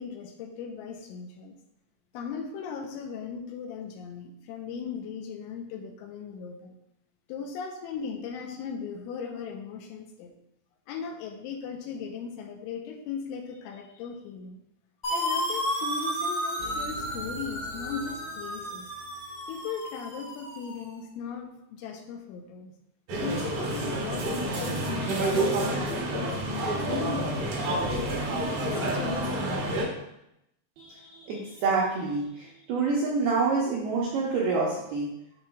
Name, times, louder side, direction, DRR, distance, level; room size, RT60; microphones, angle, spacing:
voice 1, 0.0-1.6 2.1-6.7 7.3-10.3 10.9-14.6 15.1-18.9 19.5-22.7 23.2-28.2 28.7-29.9, left 6 dB, 85° left, 3 dB, 3.0 m, -38 dB
sound 1, 15.0-20.8, equal, 40° left, 0.9 m, -33 dB
sound 2, 16.6-19.5, right 2 dB, 65° left, 1.7 m, -45 dB
sound 3, 23.1-29.9, right 1 dB, 60° right, 2.0 m, -29 dB
voice 2, 30.8-35.1, right 4 dB, 80° right, -5 dB, 2.2 m, -27 dB
10.5 x 6.0 x 2.3 m, 0.82 s
omnidirectional pair, 5.7 m